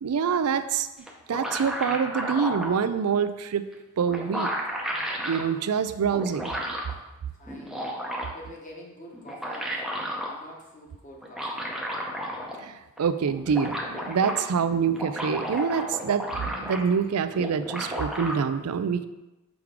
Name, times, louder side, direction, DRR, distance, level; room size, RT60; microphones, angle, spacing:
voice 1, 0.0-0.9 1.3-3.6 4.0-4.5 5.2-6.5 12.6-19.1, right 6 dB, 80° right, 11 dB, 0.4 m, -26 dB
sound 1, 1.1-2.8 3.7-3.8 4.1-5.4 6.1-6.9 7.5-8.5 9.1-10.3 11.2-12.7 13.0-13.1 13.3-14.4 14.8-17.0 17.3-18.3, equal, ahead, 0.7 m, -32 dB
voice 2, 7.3-7.9 8.3-11.7, left 1 dB, 35° left, -1 dB, 1.1 m, -47 dB
6.2 x 4.7 x 3.6 m, 1.0 s
head